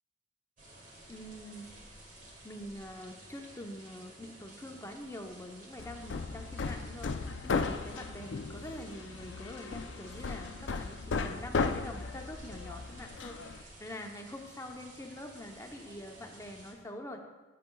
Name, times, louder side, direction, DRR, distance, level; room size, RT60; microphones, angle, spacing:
sound 1, 0.6-16.7, right 1 dB, 45° right, 1.8 m, -53 dB
voice 1, 1.1-2.0 2.4-17.2, left 1 dB, 15° left, 3 dB, 0.7 m, -45 dB
Hammer, 5.8-13.6, left 4 dB, 75° left, 0.5 m, -36 dB
16.0 x 6.7 x 2.3 m, 1.2 s
head